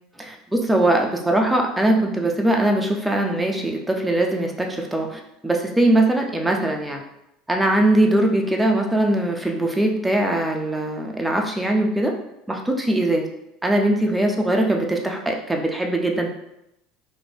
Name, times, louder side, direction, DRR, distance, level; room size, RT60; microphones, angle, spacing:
voice 1, 0.7-7.0 7.5-12.1 12.5-13.3 13.6-16.3, right 1 dB, 5° right, 1 dB, 0.4 m, -21 dB
2.6 x 2.5 x 3.3 m, 0.84 s
supercardioid pair, 135°, 0 cm